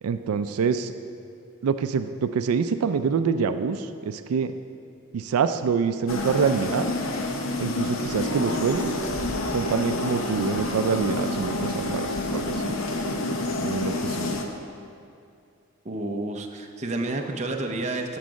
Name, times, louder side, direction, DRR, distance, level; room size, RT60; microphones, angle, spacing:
voice 1, 0.0-0.9 1.6-4.5 5.1-6.9 7.6-8.9 9.5-12.7 13.6-14.3, right 6 dB, 85° right, 10 dB, 0.4 m, -26 dB
sound 1, 6.1-14.4, left 2 dB, 65° left, 0.8 m, -28 dB
voice 2, 15.8-18.2, right 2 dB, 30° right, 3 dB, 0.6 m, -30 dB
13.5 x 4.7 x 5.2 m, 2.5 s
head